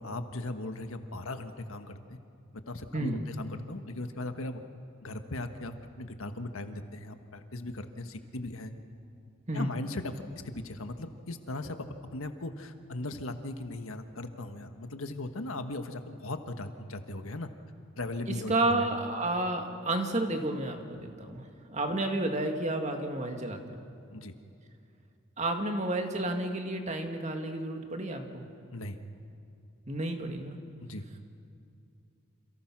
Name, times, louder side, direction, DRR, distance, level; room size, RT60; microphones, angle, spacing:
voice 1, 0.0-2.2 2.5-4.6 5.0-8.7 9.5-17.5 18.0-18.9 24.1-24.3 28.7-29.0 30.8-31.0, left 2 dB, 80° left, 7 dB, 1.5 m, -38 dB
voice 2, 18.3-23.8 25.4-28.5 29.9-30.6, right 2 dB, 35° right, 4 dB, 2.1 m, -31 dB
29.0 x 27.5 x 6.2 m, 2.5 s
head